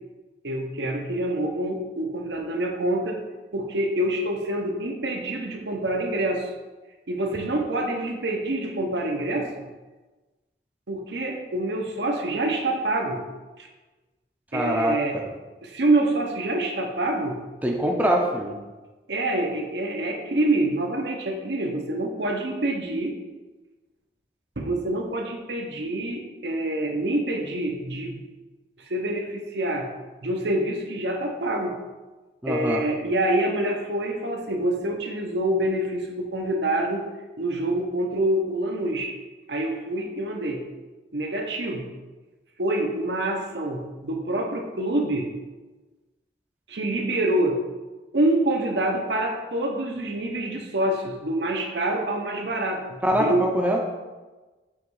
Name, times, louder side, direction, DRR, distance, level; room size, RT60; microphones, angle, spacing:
voice 1, 0.4-3.2 3.5-6.5 7.1-9.5 10.9-13.2 13.6-13.7 14.5-15.2 15.6-17.4 19.1-23.1 24.6-28.2 28.9-29.9 30.2-31.8 32.5-37.0 37.4-39.1 39.5-40.6 41.1-41.9 42.6-45.3 46.7-47.6 48.1-53.4, right 1 dB, 75° right, 2 dB, 0.9 m, -26 dB
voice 2, 14.5-15.3 17.6-18.6 32.4-32.8 53.0-53.8, equal, 10° right, 0 dB, 0.6 m, -24 dB
7.5 x 3.2 x 4.8 m, 1.2 s
head